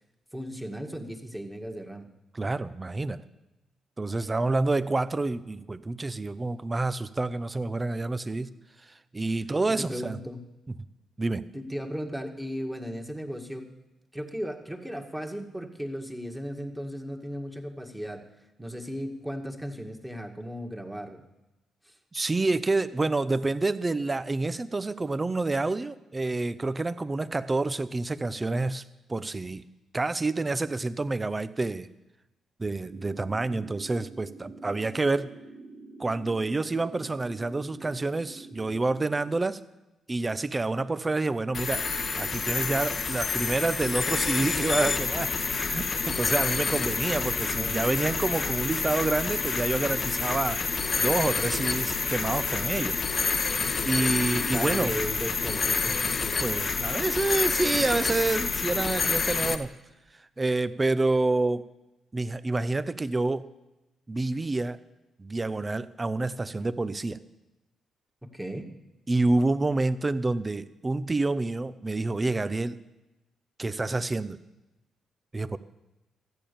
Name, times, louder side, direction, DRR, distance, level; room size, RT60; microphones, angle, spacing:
voice 1, 0.3-2.1 9.8-10.4 11.5-13.7 14.1-18.2 18.6-21.2 21.9-22.0 47.5-47.8 54.5-56.0 68.2-68.7, equal, 10° right, 1 dB, 1.9 m, -36 dB
voice 2, 2.3-3.2 4.0-8.5 9.1-10.2 10.7-10.8 11.2-11.4 22.1-28.8 29.1-29.6 29.9-31.9 32.6-35.3 36.0-39.6 40.1-41.8 42.2-45.3 45.6-50.6 51.0-53.0 53.9-54.9 56.4-59.7 60.4-61.6 62.1-63.5 64.1-64.8 65.2-67.2 69.1-72.8 73.6-74.4 75.3-75.6, right 2 dB, 30° right, 15 dB, 0.7 m, -28 dB
sound 1, 32.8-39.4, right 3 dB, 60° right, 1.8 m, -47 dB
sound 2, 41.5-59.5, left 5 dB, 45° left, 0.9 m, -28 dB
14.0 x 8.5 x 6.9 m, 0.99 s
hypercardioid pair, 40°, 0 cm